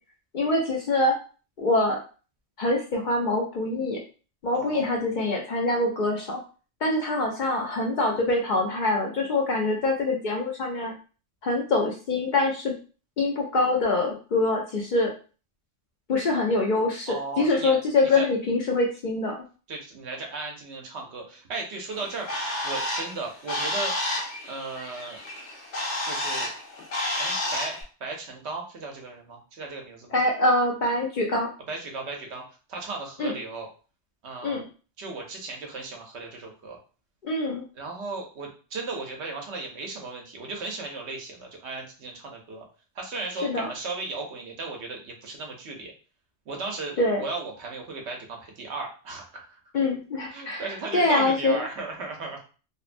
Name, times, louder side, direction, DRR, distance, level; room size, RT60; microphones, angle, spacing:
voice 1, 0.3-1.1 1.6-2.0 2.6-4.0 4.4-6.4 6.8-10.9 11.4-12.7 13.2-15.1 16.1-19.4 30.1-31.5 33.2-33.3 34.4-34.7 37.2-37.6 43.4-43.7 47.0-47.2 49.7-50.7 50.9-51.6, left 2 dB, 55° left, 0 dB, 0.5 m, -24 dB
voice 2, 4.5-5.0 17.1-17.8 18.1-18.3 19.7-22.3 22.6-24.0 24.5-25.2 26.0-26.5 27.2-30.2 31.7-32.4 32.7-33.7 34.2-34.6 35.0-36.8 37.8-42.6 42.9-45.9 46.5-49.6 50.3-52.4, right 3 dB, 75° right, 1 dB, 1.0 m, -36 dB
Bird, 21.9-27.8, left 1 dB, 85° left, 1.1 m, -31 dB
2.8 x 2.1 x 2.5 m, 0.36 s
omnidirectional pair, 1.1 m